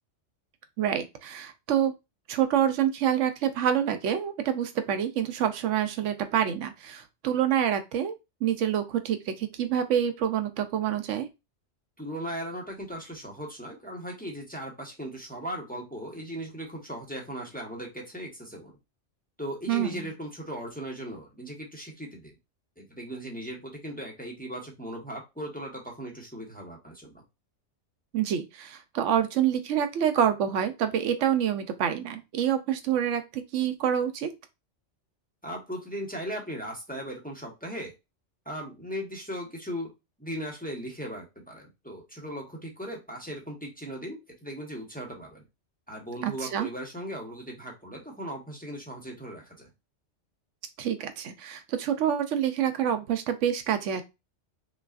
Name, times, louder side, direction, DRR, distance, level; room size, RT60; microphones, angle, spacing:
voice 1, 0.8-1.9 2.3-8.2 8.4-11.3 19.7-20.1 28.1-34.3 46.2-46.7 50.8-54.0, right 9 dB, 85° right, 9 dB, 0.9 m, -27 dB
voice 2, 12.0-18.7 19.4-22.3 22.8-27.2 35.4-37.9 38.4-39.9 40.2-45.4 45.9-49.7, equal, 10° left, 0 dB, 1.0 m, -38 dB
5.4 x 2.4 x 2.4 m, 0.24 s
omnidirectional pair, 1.2 m